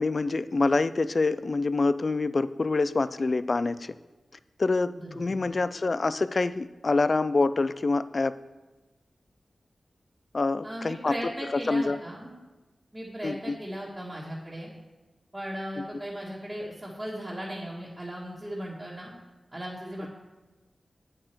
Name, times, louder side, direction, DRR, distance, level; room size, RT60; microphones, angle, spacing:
voice 1, 0.0-3.9 4.6-8.3 10.3-11.2 11.5-12.0 13.2-13.6, left 3 dB, 45° left, 15 dB, 0.4 m, -26 dB
voice 2, 4.9-5.5 10.6-12.4 12.9-14.7 15.3-19.2 19.5-20.1, equal, 15° right, -8 dB, 1.7 m, -37 dB
8.9 x 7.6 x 4.6 m, 1.2 s
wide cardioid pair, 95°, 0 cm